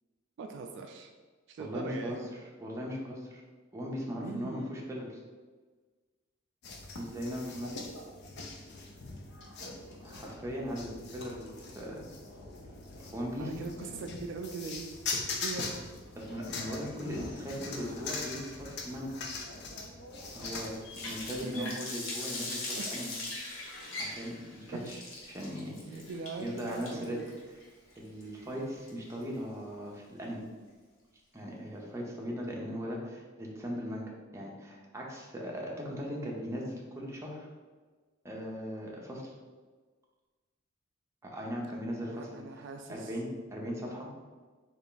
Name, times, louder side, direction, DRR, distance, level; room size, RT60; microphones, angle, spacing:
voice 1, 0.4-1.1 1.5-2.2 4.2-4.8 13.4-15.0 15.4-15.7 21.4-21.8 22.2-23.2 24.8-24.9 25.8-27.2 42.0-43.1, right 4 dB, 65° right, 4 dB, 0.3 m, -41 dB
voice 2, 1.6-2.2 2.6-3.4 3.7-5.2 7.0-7.8 9.6-9.7 10.0-11.5 11.8-12.1 13.0-13.6 16.2-19.2 20.3-23.1 24.0-25.0 25.3-26.0 26.4-27.2 28.0-30.4 31.3-37.5 38.2-39.3 41.2-42.4 42.9-44.1, equal, 15° right, -3 dB, 0.6 m, -38 dB
sound 1, 6.6-21.4, left 3 dB, 60° left, 0.5 m, -41 dB
Water tap faucet, 20.4-29.4, left 2 dB, 80° left, 0.8 m, -41 dB
3.4 x 2.4 x 3.8 m, 1.4 s
head